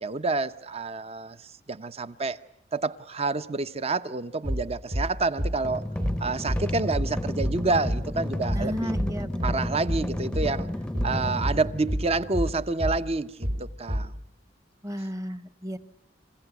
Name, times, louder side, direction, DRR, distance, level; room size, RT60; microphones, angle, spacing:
voice 1, 0.0-2.4 2.7-5.8 6.2-9.0 9.4-10.7 11.0-14.1, right 3 dB, 35° right, 0.8 m, -28 dB
sound 1, 4.4-4.7 4.9-5.1 5.4-5.6 6.0-6.2 6.5-6.7 6.9-7.1 7.4-7.6 7.8-8.1 8.5-8.7 8.9-9.1 9.4-9.6 9.9-10.1 10.3-10.5 10.9-11.1 11.4-11.6 11.9-12.1 12.3-12.5 12.8-13.0 13.4-13.6 13.9-14.1, equal, 60° right, 5.9 m, -28 dB
sound 2, 5.6-12.5, left 1 dB, 5° left, 0.8 m, -33 dB
voice 2, 8.5-10.3 14.8-15.8, equal, 20° right, 1.2 m, -34 dB
28.0 x 16.0 x 8.0 m
head